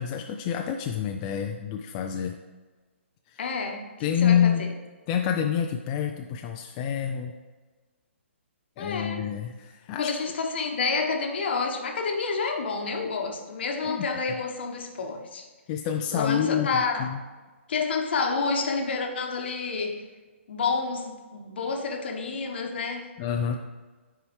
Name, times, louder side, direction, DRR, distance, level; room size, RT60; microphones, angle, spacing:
voice 1, 0.0-2.4 3.3-3.4 4.0-4.7 5.1-7.4 8.8-10.1 13.8-14.1 15.7-17.2 23.2-23.6, left 8 dB, 30° left, 3 dB, 0.4 m, -27 dB
voice 2, 3.4-3.9 4.2-4.7 8.8-9.3 10.0-15.5 16.1-17.1 17.7-20.0 20.5-23.1, left 4 dB, 55° left, 3 dB, 1.0 m, -29 dB
9.6 x 4.7 x 3.2 m, 1.3 s
figure-of-eight pair, 130°, 7 cm